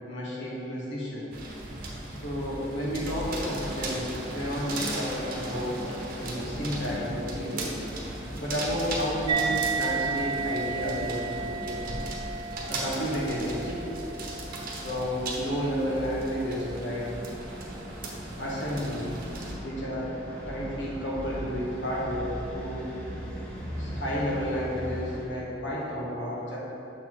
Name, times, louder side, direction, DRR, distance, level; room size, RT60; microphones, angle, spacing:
voice 1, 0.1-1.3 2.1-5.8 6.2-7.9 8.4-11.8 12.7-14.0 14.8-17.1 18.4-19.1 19.6-20.1 20.5-22.8 23.8-26.6, equal, 85° left, -5 dB, 1.4 m, -31 dB
sound 1, 1.3-19.5, right 2 dB, 50° right, 1.0 m, -37 dB
sound 2, 5.3-25.2, equal, 5° left, 1.1 m, -41 dB
sound 3, 9.3-16.2, right 5 dB, 25° right, 0.3 m, -33 dB
6.8 x 4.1 x 4.5 m, 2.9 s
head